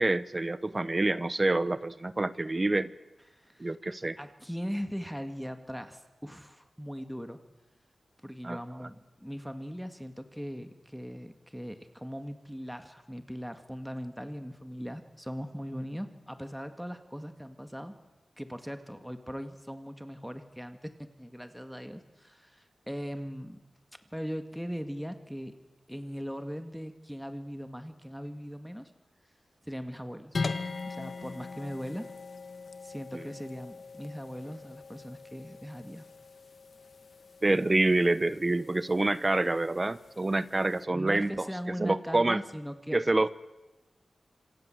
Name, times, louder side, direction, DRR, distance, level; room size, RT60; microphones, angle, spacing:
voice 1, 0.0-2.9 3.6-4.2 8.4-8.6 33.1-33.3 37.4-41.5 41.8-42.4 42.9-43.3, right 2 dB, 25° right, 16 dB, 0.9 m, -27 dB
voice 2, 3.3-3.8 4.2-7.4 8.2-17.9 18.4-23.6 24.1-25.5 25.9-28.9 29.6-30.4 30.9-32.1 32.8-36.0 40.9-43.0, equal, ahead, 8 dB, 1.9 m, -39 dB
sound 1, 30.3-40.8, left 4 dB, 60° left, 1.7 m, -41 dB
26.5 x 26.5 x 7.8 m, 1.0 s
wide cardioid pair, 95°, 0 cm